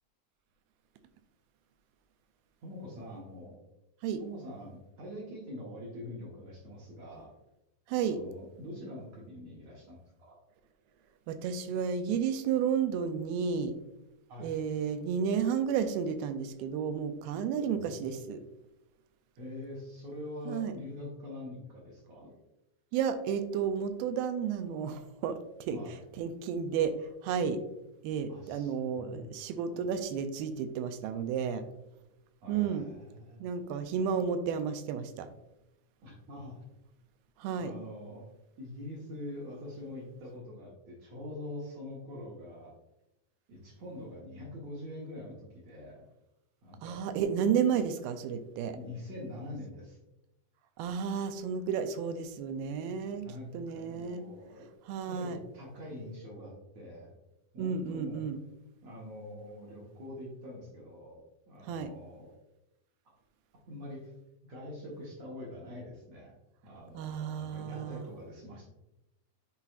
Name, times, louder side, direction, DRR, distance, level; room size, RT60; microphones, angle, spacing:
voice 1, 2.6-3.6 4.2-7.4 8.0-10.4 14.3-14.5 17.6-18.2 19.4-22.3 25.7-26.0 28.3-29.3 29.6-29.8 32.4-33.5 36.0-36.6 37.6-38.3 38.6-42.8 43.5-46.1 46.6-47.1 48.6-50.0 53.2-54.7 55.0-57.1 57.5-58.2 58.8-62.4 63.1-63.2 63.7-64.1 64.5-66.3 66.6-68.7, left 1 dB, 60° right, -3 dB, 1.9 m, -44 dB
voice 2, 7.9-8.2 11.3-13.8 14.4-18.4 20.5-20.7 22.9-25.8 26.2-27.0 27.2-27.6 28.0-31.6 32.5-32.9 33.4-35.3 37.4-37.7 46.8-48.8 50.8-53.3 53.5-54.2 54.9-55.4 57.6-58.4 61.7-61.9 67.0-68.1, right 7 dB, 85° right, 10 dB, 2.3 m, -32 dB
9.7 x 4.1 x 2.4 m, 0.92 s
omnidirectional pair, 4.2 m